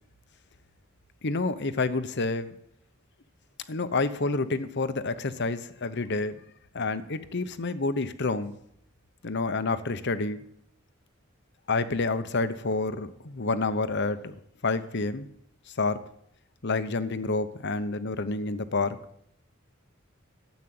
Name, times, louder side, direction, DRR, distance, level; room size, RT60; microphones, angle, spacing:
voice 1, 1.2-2.5 3.7-6.4 6.7-8.5 9.2-10.4 11.7-14.3 14.6-15.3 15.8-16.0 16.6-19.0, left 3 dB, 55° left, 12 dB, 0.9 m, -28 dB
13.5 x 8.3 x 7.8 m, 0.72 s
head